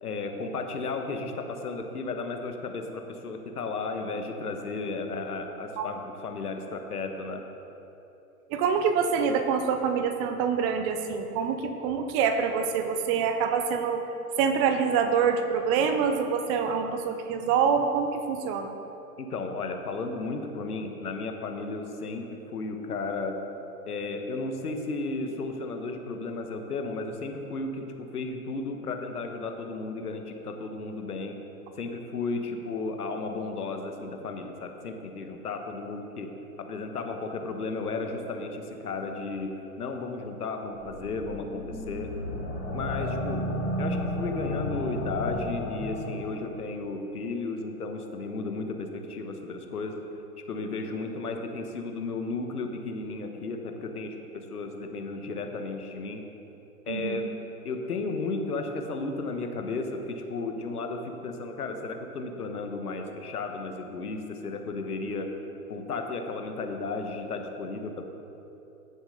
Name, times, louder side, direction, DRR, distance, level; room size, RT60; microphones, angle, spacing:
voice 1, 0.0-7.4 19.2-23.3 23.9-31.4 31.8-36.3 36.6-39.5 39.8-42.1 42.7-43.4 43.8-50.0 50.5-56.2 56.9-57.3 57.6-65.3 65.7-68.1, left 3 dB, 80° left, 4 dB, 1.4 m, -34 dB
voice 2, 8.5-14.0 14.4-18.7 56.9-57.2, right 6 dB, 30° right, 7 dB, 0.7 m, -26 dB
sound 1, 40.8-46.4, left 1 dB, 20° left, 2.6 m, -32 dB
14.5 x 7.2 x 3.9 m, 2.9 s
hypercardioid pair, 120°, 45 cm